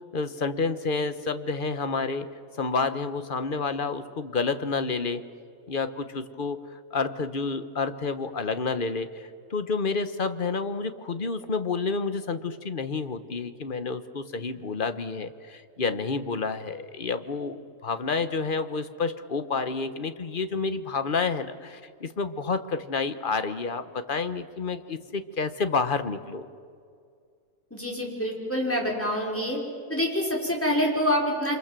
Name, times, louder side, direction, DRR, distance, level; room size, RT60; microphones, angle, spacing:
voice 1, 0.1-2.3 2.6-5.2 5.7-6.6 6.9-26.5, left 4 dB, 35° left, 10 dB, 1.2 m, -29 dB
voice 2, 27.7-29.6 29.9-31.6, equal, 10° left, -1 dB, 5.4 m, -26 dB
28.0 x 26.0 x 7.6 m, 2.2 s
omnidirectional pair, 1.6 m